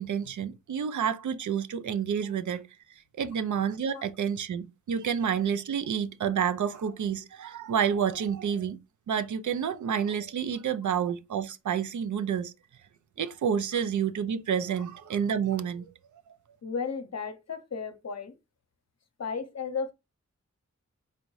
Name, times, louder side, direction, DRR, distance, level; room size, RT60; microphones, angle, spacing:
voice 1, 0.0-2.7 3.2-8.8 9.1-12.5 13.2-15.9, right 8 dB, 70° right, 0.4 m, -29 dB
voice 2, 16.6-18.4 19.2-19.9, left 5 dB, 55° left, 0.7 m, -34 dB
4.3 x 2.6 x 3.1 m
cardioid pair, 50°, 31 cm